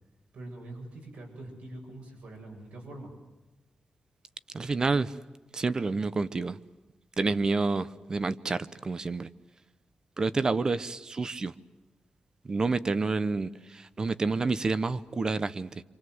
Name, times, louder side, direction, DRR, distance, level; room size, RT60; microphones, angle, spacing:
voice 1, 0.3-3.1, right 1 dB, 75° right, 1 dB, 7.5 m, -44 dB
voice 2, 4.5-5.1 5.5-6.6 7.2-9.3 10.2-11.5 12.4-15.8, right 3 dB, 30° right, 15 dB, 0.9 m, -29 dB
27.5 x 27.0 x 8.0 m, 1.1 s
wide cardioid pair, 180°, 2 cm